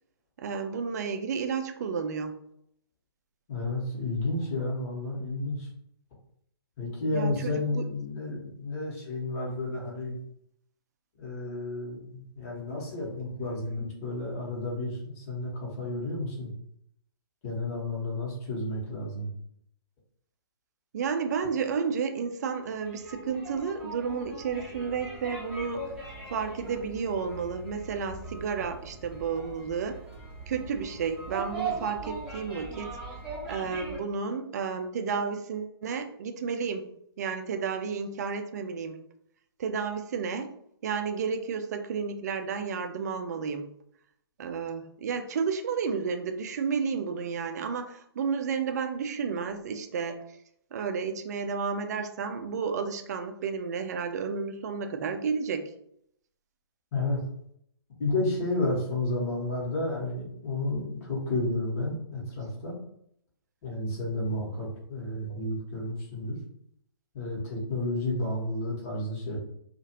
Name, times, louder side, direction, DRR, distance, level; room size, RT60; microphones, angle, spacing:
voice 1, 0.4-2.4 7.1-7.8 20.9-25.9 26.3-30.0 30.5-33.0 33.5-36.8 37.2-39.0 39.6-40.6 40.8-43.7 44.4-50.2 50.7-55.7, right 6 dB, 40° right, 7 dB, 0.4 m, -32 dB
voice 2, 3.5-5.7 6.8-10.2 11.2-16.5 17.4-19.3 56.9-57.2 58.0-62.8 63.6-66.4 67.1-69.4, left 2 dB, 35° left, -4 dB, 1.3 m, -31 dB
sound 1, 22.6-34.0, right 3 dB, 5° right, 0.9 m, -40 dB
2.7 x 2.4 x 2.9 m, 0.71 s
figure-of-eight pair, 130°, 13 cm